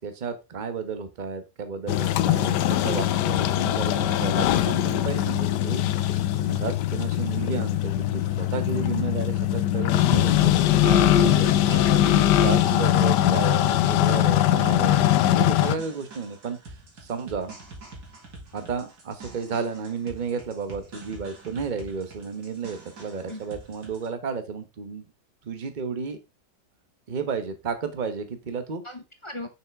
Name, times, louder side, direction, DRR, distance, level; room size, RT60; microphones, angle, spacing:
voice 1, 0.0-5.9 6.1-11.8 12.4-15.0 15.4-17.5 18.5-25.0 25.4-26.2 27.1-28.9, right 5 dB, 35° right, 9 dB, 1.0 m, -32 dB
sound 1, 1.9-15.8, left 12 dB, 80° left, 1.2 m, -21 dB
sound 2, 10.8-24.1, right 2 dB, 65° right, 2.7 m, -46 dB
voice 2, 11.5-12.3 12.7-12.8 23.3-23.4 28.8-29.5, left 2 dB, 30° left, 6 dB, 0.5 m, -36 dB
6.4 x 6.0 x 3.5 m, 0.25 s
omnidirectional pair, 1.8 m